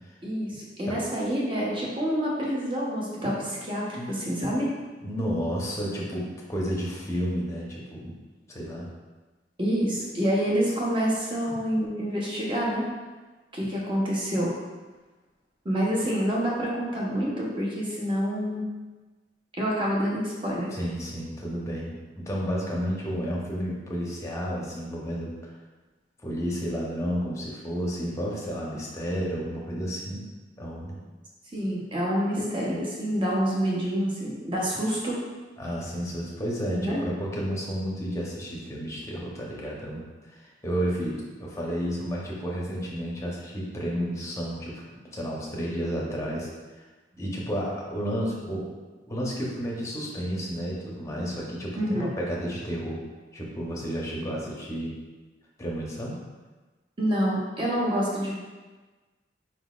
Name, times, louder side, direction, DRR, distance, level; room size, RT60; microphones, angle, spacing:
voice 1, 0.2-4.7 9.6-12.8 13.5-14.5 15.6-18.7 19.6-20.7 31.5-35.2 36.8-37.0 51.8-52.1 57.0-58.3, equal, 25° right, -4 dB, 0.9 m, -27 dB
voice 2, 5.0-8.1 8.5-8.9 11.4-11.6 20.7-25.3 26.2-30.2 30.6-31.0 35.6-44.8 45.1-46.5 46.8-46.9 47.2-48.7 49.1-53.0 53.3-54.9 55.6-56.2, equal, 15° left, -4 dB, 0.7 m, -31 dB
4.4 x 3.9 x 2.4 m, 1.3 s
head